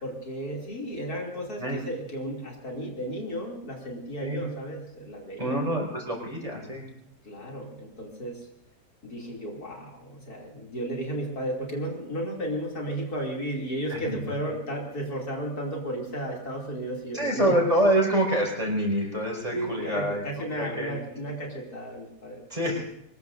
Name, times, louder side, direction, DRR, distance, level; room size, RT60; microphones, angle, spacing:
voice 1, 0.0-1.6 1.9-5.6 7.2-8.4 9.0-17.6 19.2-22.4, right 1 dB, 60° left, -1 dB, 3.4 m, -34 dB
voice 2, 5.4-6.9 13.9-14.2 17.1-20.2 20.5-20.9 22.5-22.8, right 1 dB, 20° right, -1 dB, 5.5 m, -26 dB
25.0 x 20.5 x 2.7 m, 0.75 s
omnidirectional pair, 1.8 m